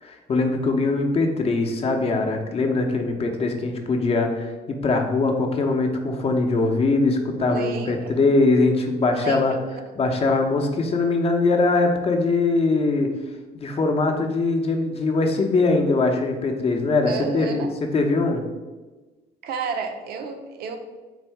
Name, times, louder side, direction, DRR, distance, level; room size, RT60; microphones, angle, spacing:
voice 1, 0.0-9.5 10.0-13.1 13.5-17.7 17.9-18.4, left 3 dB, 35° left, 3 dB, 0.7 m, -22 dB
voice 2, 7.5-8.2 9.1-9.8 17.0-17.7 19.4-20.8, right 5 dB, 70° right, 6 dB, 0.6 m, -31 dB
4.0 x 2.7 x 4.5 m, 1.2 s
cardioid pair, 110°, 17 cm